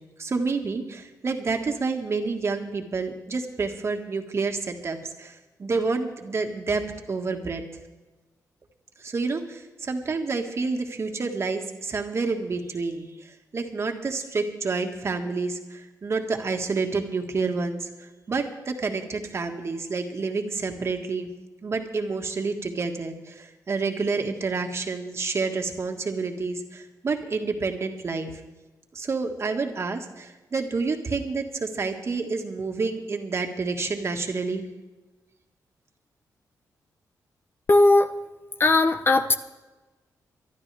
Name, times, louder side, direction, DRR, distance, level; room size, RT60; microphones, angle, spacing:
voice 1, 0.2-6.8 7.1-7.6 9.0-17.9 18.3-21.3 21.6-28.4 28.9-34.7, right 4 dB, 40° right, 4 dB, 1.7 m, -29 dB
voice 2, 37.7-38.1 38.6-39.3, left 2 dB, 35° left, 8 dB, 0.8 m, -18 dB
24.5 x 11.5 x 3.4 m, 1.2 s
cardioid pair, 95°, 7 cm